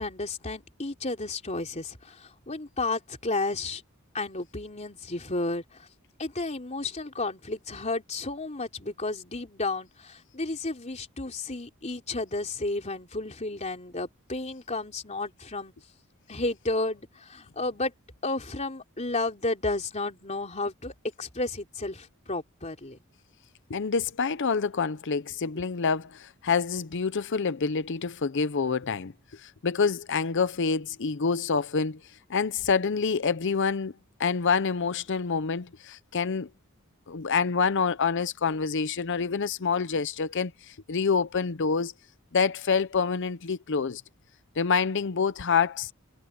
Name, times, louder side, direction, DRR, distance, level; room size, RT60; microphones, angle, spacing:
voice 1, 0.0-3.8 4.1-5.9 6.2-15.7 16.3-17.9 18.2-23.0, left 2 dB, 30° left, 3.4 m, -32 dB
voice 2, 23.7-29.1 29.4-32.0 32.3-33.9 34.2-36.5 37.1-41.9 42.3-44.0 44.6-45.9, left 5 dB, 55° left, 0.6 m, -27 dB
head